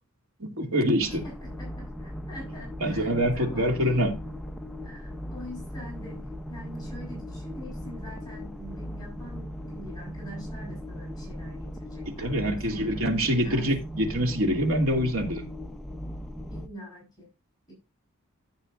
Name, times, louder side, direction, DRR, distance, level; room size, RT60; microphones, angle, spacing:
voice 1, 0.4-1.2 2.8-4.1 12.2-15.5, equal, 75° right, 2.6 m, -25 dB
sound 1, 1.0-16.7, equal, ahead, 0.8 m, -38 dB
voice 2, 1.1-4.1 4.8-13.7 16.5-17.3 17.7-17.8, equal, 20° left, 5.5 m, -44 dB
15.0 x 7.2 x 2.6 m
head